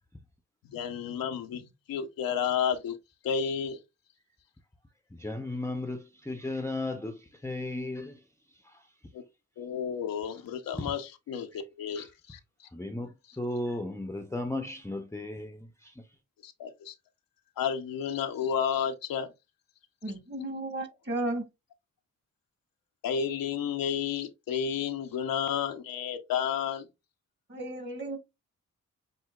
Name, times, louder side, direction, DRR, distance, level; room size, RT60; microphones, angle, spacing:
voice 1, 0.7-3.0 3.2-3.8 9.1-9.2 9.6-12.4 16.4-16.9 17.6-19.3 23.0-26.8, left 7 dB, 80° left, 0.8 m, -31 dB
voice 2, 5.2-8.2 12.0-12.1 12.7-15.9, left 2 dB, 10° left, 0.7 m, -35 dB
voice 3, 20.0-21.4 27.5-28.2, right 2 dB, 30° right, 1.8 m, -34 dB
7.6 x 2.8 x 2.3 m
supercardioid pair, 50°, 34 cm